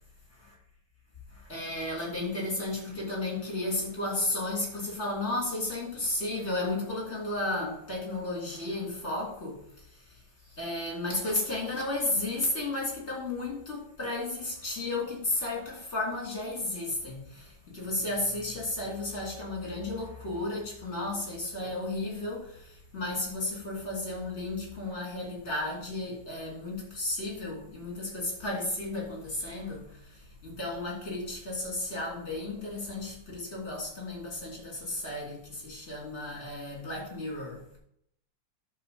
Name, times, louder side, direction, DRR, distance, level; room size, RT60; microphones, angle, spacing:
voice 1, 1.3-37.6, left 2 dB, 35° left, -3 dB, 4.0 m, -33 dB
11.0 x 4.5 x 7.2 m, 0.73 s
omnidirectional pair, 2.0 m